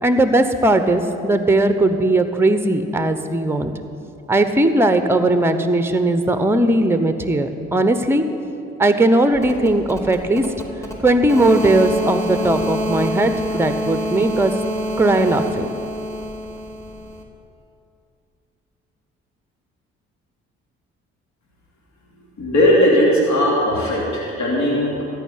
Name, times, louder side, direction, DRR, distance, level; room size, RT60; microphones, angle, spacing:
voice 1, 0.0-3.7 4.3-8.2 8.8-10.4 11.0-14.5 15.0-15.7, right 2 dB, 5° right, 8 dB, 0.9 m, -18 dB
sound 1, 9.3-17.2, equal, 10° left, 2.6 m, -27 dB
voice 2, 22.4-25.0, equal, 60° left, -4 dB, 3.1 m, -17 dB
13.5 x 5.6 x 9.4 m, 2.7 s
hypercardioid pair, 55°, 32 cm